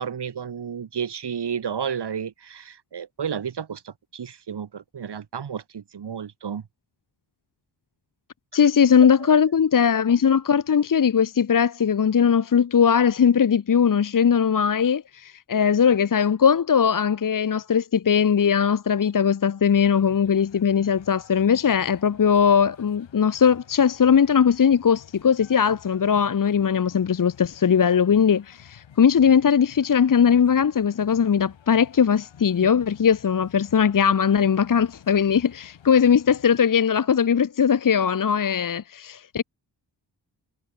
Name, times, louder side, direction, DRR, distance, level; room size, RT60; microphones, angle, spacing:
voice 1, 0.0-6.6 9.2-9.4 32.6-32.7, right 7 dB, 65° right, 2.0 m, -32 dB
voice 2, 8.5-39.4, left 7 dB, 45° left, 1.0 m, -20 dB
sound 1, 19.7-36.6, left 8 dB, 85° left, 4.2 m, -51 dB
cardioid pair, 55°, 44 cm